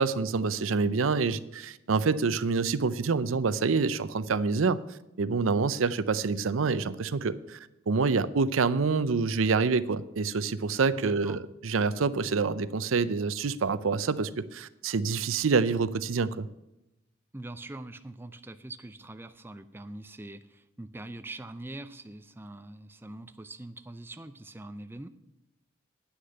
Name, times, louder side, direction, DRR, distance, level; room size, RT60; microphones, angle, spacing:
voice 1, 0.0-4.8 5.2-7.6 7.9-16.5, right 4 dB, 90° right, 15 dB, 0.6 m, -27 dB
voice 2, 11.0-11.4 17.3-25.1, right 2 dB, 10° right, 10 dB, 0.4 m, -43 dB
9.7 x 6.5 x 8.7 m, 0.92 s
head